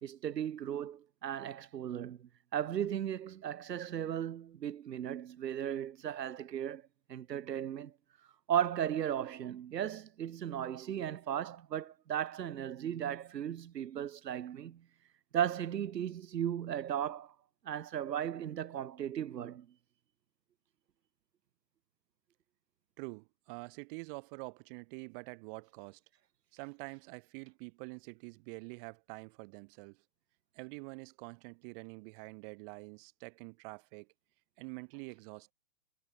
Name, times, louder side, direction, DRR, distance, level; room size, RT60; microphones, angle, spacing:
voice 1, 0.0-6.8 7.1-7.9 8.5-14.8 15.3-17.3 17.6-19.7, right 10 dB, 90° right, 1.3 m, -36 dB
voice 2, 23.0-26.0 26.5-30.0 30.5-34.1 34.6-35.5, right 33 dB, 35° right, 4.2 m, -46 dB
hypercardioid pair, 150°, 48 cm